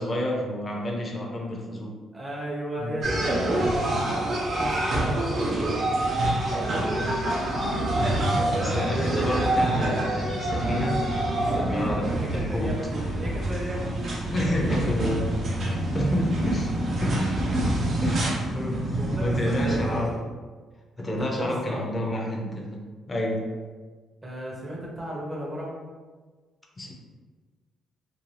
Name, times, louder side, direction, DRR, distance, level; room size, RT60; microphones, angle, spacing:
voice 1, 0.0-2.0 2.8-3.0 3.9-4.3 8.5-11.1 11.6-12.9 14.3-16.7 17.0-17.3 17.5-20.2 21.0-23.6 26.8-26.9, left 1 dB, 25° left, -1 dB, 0.5 m, -30 dB
voice 2, 2.1-3.5 4.5-5.5 6.8-7.4 8.6-9.3 11.6-14.2 18.3-20.1 21.2-21.9 24.2-25.8, equal, 15° right, -5 dB, 0.7 m, -35 dB
sound 1, 3.0-20.2, right 1 dB, 55° right, 0.7 m, -26 dB
2.5 x 2.3 x 3.1 m, 1.4 s
cardioid pair, 90°, 0 cm